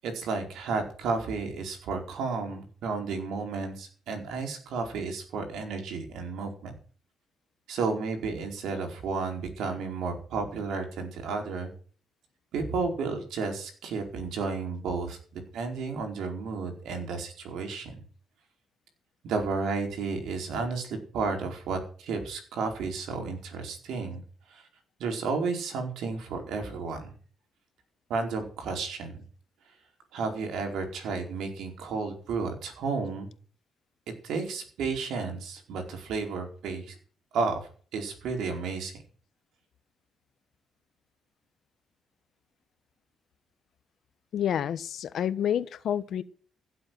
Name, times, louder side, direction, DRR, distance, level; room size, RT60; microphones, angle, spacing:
voice 1, 0.0-6.8 7.7-11.7 12.5-17.9 19.2-24.2 24.5-24.6 25.0-27.1 28.1-29.2 30.1-33.3 34.2-36.9 37.3-37.6 37.9-38.9, right 4 dB, 80° right, 4 dB, 4.7 m, -32 dB
voice 2, 44.3-46.2, left 9 dB, 65° left, 14 dB, 1.2 m, -29 dB
16.0 x 7.8 x 7.7 m, 0.43 s
cardioid pair, 90°, 0 cm